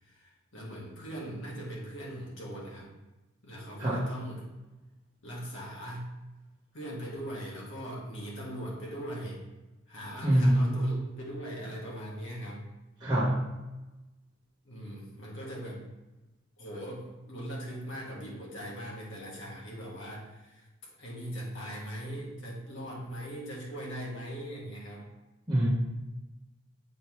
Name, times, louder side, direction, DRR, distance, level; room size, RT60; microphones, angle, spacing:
voice 1, 0.0-2.9 3.4-4.5 5.2-6.1 6.7-9.4 9.9-12.6 14.6-15.8 16.6-20.7 21.0-25.1, equal, 65° left, -4 dB, 1.8 m, -40 dB
voice 2, 10.2-10.9 13.0-13.5 25.5-25.7, right 1 dB, 20° right, -9 dB, 1.2 m, -25 dB
8.1 x 3.9 x 3.2 m, 1.1 s
head